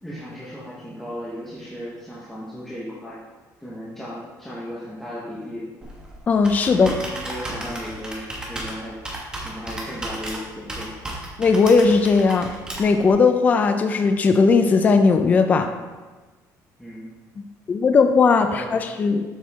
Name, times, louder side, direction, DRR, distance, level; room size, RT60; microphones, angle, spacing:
voice 1, 0.0-3.2 3.6-5.7 6.6-9.0 9.4-10.9 15.6-15.8 16.8-17.1 18.5-18.8, equal, 5° left, -8 dB, 1.1 m, -36 dB
Computer keyboard, 5.8-13.1, right 1 dB, 10° right, 1.1 m, -34 dB
voice 2, 6.3-7.0 11.4-12.5 12.8-15.7 17.7-19.2, left 4 dB, 25° left, 7 dB, 0.4 m, -17 dB
7.2 x 6.0 x 3.5 m, 1.3 s
cardioid pair, 170°, 7 cm